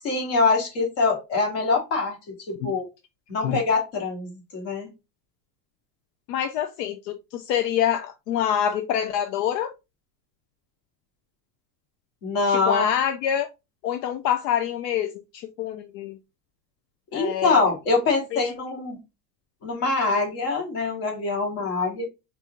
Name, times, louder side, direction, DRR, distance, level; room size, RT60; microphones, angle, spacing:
voice 1, 0.0-2.2 2.5-2.9 3.3-4.9 12.2-12.9 17.1-19.0 19.6-22.0, left 3 dB, 50° left, 2.1 m, -24 dB
voice 2, 6.3-9.7 12.5-13.5 13.8-16.2 17.1-17.7 18.3-18.4, left 9 dB, 80° left, 0.7 m, -26 dB
4.1 x 2.7 x 3.5 m
supercardioid pair, 175°, 49 cm